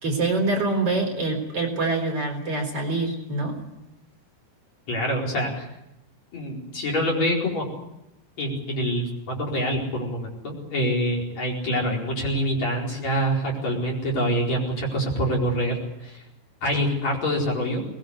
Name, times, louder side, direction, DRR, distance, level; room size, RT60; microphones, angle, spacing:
voice 1, 0.0-3.6, right 3 dB, 40° right, 3 dB, 4.7 m, -25 dB
voice 2, 4.9-5.7 6.3-7.7 8.4-16.2 16.6-17.8, equal, 45° left, -2 dB, 5.7 m, -26 dB
22.5 x 20.0 x 8.1 m, 0.87 s
omnidirectional pair, 4.3 m